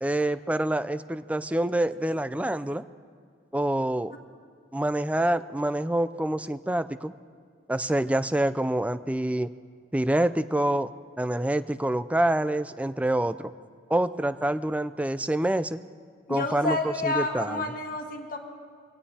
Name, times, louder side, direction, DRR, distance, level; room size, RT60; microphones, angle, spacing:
voice 1, 0.0-2.8 3.5-4.1 4.7-7.1 7.7-9.5 9.9-10.9 11.2-13.5 13.9-15.8 16.3-17.7, right 1 dB, 5° right, 13 dB, 0.3 m, -26 dB
voice 2, 16.3-18.4, left 2 dB, 50° left, 3 dB, 1.5 m, -29 dB
23.5 x 17.5 x 2.8 m, 2.1 s
head